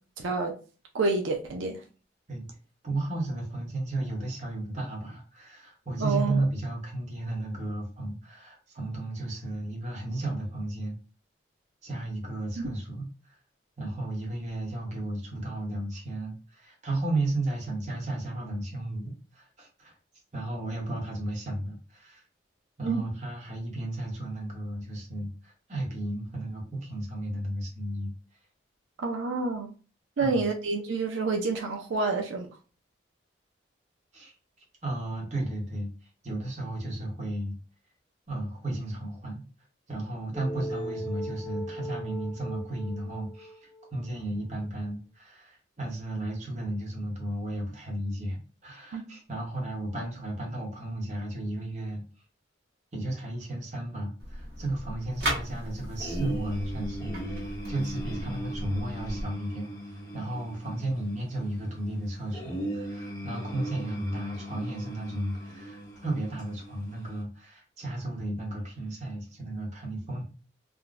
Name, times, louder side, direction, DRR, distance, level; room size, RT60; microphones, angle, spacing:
voice 1, 0.2-0.5 0.9-1.8 6.0-6.4 12.6-12.7 22.8-23.0 29.0-29.7 30.2-32.5 48.9-49.0, right 3 dB, 90° right, 0.5 m, -28 dB
voice 2, 2.8-11.0 11.8-13.4 13.8-19.9 20.3-22.2 22.8-28.1 30.2-30.5 34.1-34.3 34.8-37.6 38.3-39.4 39.9-52.0 52.9-70.2, right 1 dB, 40° right, 1.0 m, -34 dB
sound 1, 40.3-44.1, right 1 dB, 20° right, 0.5 m, -38 dB
sound 2, 54.2-59.2, right 1 dB, 60° right, 1.2 m, -36 dB
sound 3, 56.0-67.2, right 1 dB, 20° left, 0.9 m, -39 dB
3.6 x 2.2 x 2.4 m
head